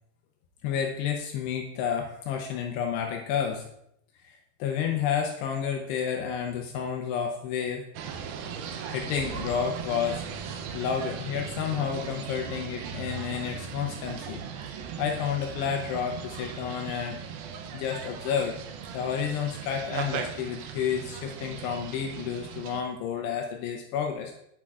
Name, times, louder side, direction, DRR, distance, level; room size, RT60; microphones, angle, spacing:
voice 1, 0.6-3.7 4.2-7.9 8.9-10.2 10.7-14.4 15.0-17.2 17.7-18.6 18.9-24.3, left 7 dB, 80° left, 2 dB, 2.7 m, -30 dB
sound 1, 8.0-22.8, right 7 dB, 80° right, 2.2 m, -38 dB
8.8 x 8.5 x 2.4 m, 0.75 s
omnidirectional pair, 5.0 m